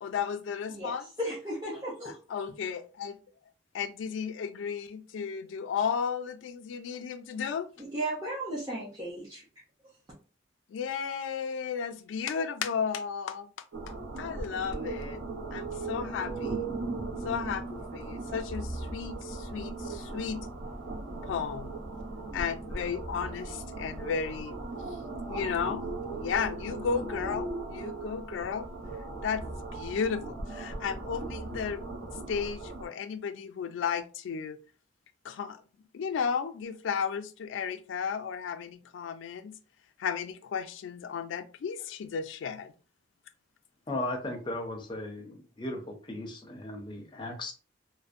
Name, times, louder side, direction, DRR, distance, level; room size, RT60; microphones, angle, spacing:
voice 1, 0.0-1.0 2.1-3.2 3.7-7.7 10.7-13.5 14.2-15.2 15.5-16.7 17.2-20.4 21.2-21.7 22.3-24.5 24.8-25.0 25.3-28.7 29.2-34.6 35.2-35.6 35.9-39.6 40.0-42.7, left 6 dB, 85° left, 0.3 m, -34 dB
voice 2, 0.7-2.2 7.8-9.4, right 1 dB, 20° right, 0.6 m, -35 dB
sound 1, 13.7-32.9, right 3 dB, 65° right, 0.6 m, -38 dB
voice 3, 43.9-47.5, left 1 dB, 25° left, 0.4 m, -36 dB
2.5 x 2.0 x 2.4 m
head